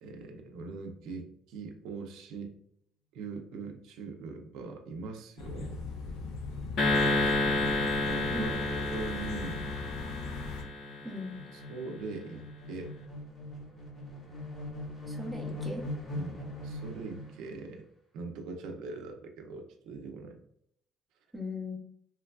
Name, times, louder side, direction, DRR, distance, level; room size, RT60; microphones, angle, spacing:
voice 1, 0.0-2.6 3.1-5.8 7.0-9.8 11.5-12.9 16.1-17.9 18.1-20.4, right 3 dB, 85° right, 4 dB, 0.5 m, -41 dB
sound 1, 5.4-10.6, left 3 dB, 85° left, 0.4 m, -39 dB
sound 2, 6.8-11.2, left 2 dB, 65° left, 0.8 m, -30 dB
voice 2, 8.3-8.6 11.0-11.4 15.1-15.8 21.3-21.8, left 2 dB, ahead, -2 dB, 0.6 m, -38 dB
sound 3, 10.3-17.5, left 1 dB, 30° left, 0.9 m, -42 dB
3.0 x 2.3 x 2.2 m, 0.70 s
cardioid pair, 150°, 0 cm